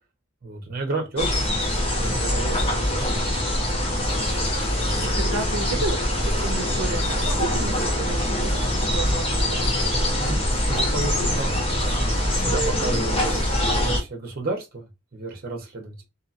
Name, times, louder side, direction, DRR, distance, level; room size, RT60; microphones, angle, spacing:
voice 1, 0.4-3.4 4.7-5.4 10.2-10.4 10.7-16.0, right 3 dB, 45° right, 0.9 m, -33 dB
sound 1, 1.2-14.0, left 1 dB, 25° left, 0.9 m, -23 dB
voice 2, 4.8-8.7 8.9-9.6, right 4 dB, 85° right, 0.5 m, -32 dB
2.8 x 2.7 x 2.5 m
head